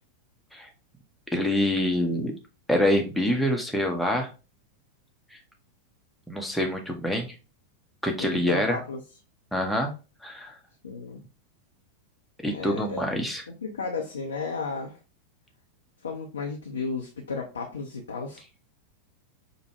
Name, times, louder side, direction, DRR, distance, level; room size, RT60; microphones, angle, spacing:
voice 1, 1.3-2.3 2.7-4.3 5.3-5.4 6.3-7.3 8.0-8.8 9.5-9.9 10.2-10.6 12.4-13.4, left 1 dB, ahead, 1 dB, 0.8 m, -26 dB
voice 2, 8.2-9.0 10.8-11.2 12.5-13.0 13.5-15.0 16.0-18.4, left 4 dB, 70° left, 0 dB, 0.6 m, -33 dB
5.1 x 2.2 x 2.8 m, 0.31 s
figure-of-eight pair, 90°, 0 cm